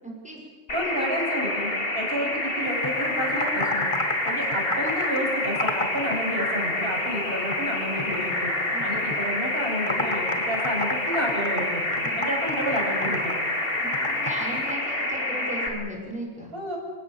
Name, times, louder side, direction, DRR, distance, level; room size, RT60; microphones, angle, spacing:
voice 1, 0.0-0.4 8.7-8.8 12.0-12.2 13.8-16.5, equal, 5° right, -1 dB, 6.0 m, -36 dB
sound 1, 0.7-15.7, left 1 dB, 55° left, 3.4 m, -28 dB
voice 2, 0.7-3.9 4.2-8.5 8.8-11.8 12.2-13.3 16.5-16.8, equal, 55° right, -2 dB, 7.6 m, -30 dB
Computer keyboard, 2.6-6.2 6.5-7.7 8.0-9.3 9.6-14.7, left 2 dB, 25° left, 1.9 m, -32 dB
29.0 x 17.0 x 7.5 m, 1.5 s
omnidirectional pair, 1.2 m